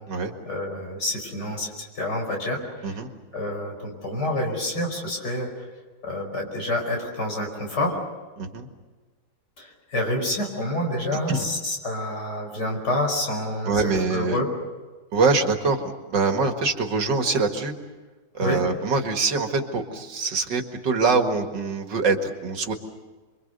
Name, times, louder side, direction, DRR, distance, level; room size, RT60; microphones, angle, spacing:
voice 1, 0.5-2.9 3.3-5.7 6.0-8.0 9.6-14.5 18.4-18.6, left 1 dB, 65° left, 2 dB, 5.6 m, -28 dB
voice 2, 8.4-8.7 11.3-11.5 13.7-14.4 15.1-17.7 18.3-22.7, right 4 dB, 75° right, 4 dB, 2.6 m, -24 dB
28.0 x 24.0 x 6.8 m, 1.3 s
omnidirectional pair, 1.9 m